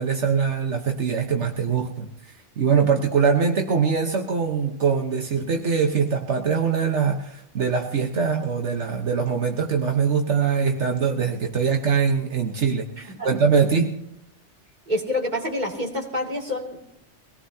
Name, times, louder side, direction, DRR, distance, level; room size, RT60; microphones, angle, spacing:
voice 1, 0.0-13.9, right 6 dB, 75° right, 4 dB, 1.5 m, -23 dB
voice 2, 14.9-16.9, left 1 dB, 40° right, 0 dB, 2.9 m, -27 dB
23.0 x 18.0 x 2.8 m, 0.81 s
omnidirectional pair, 1.2 m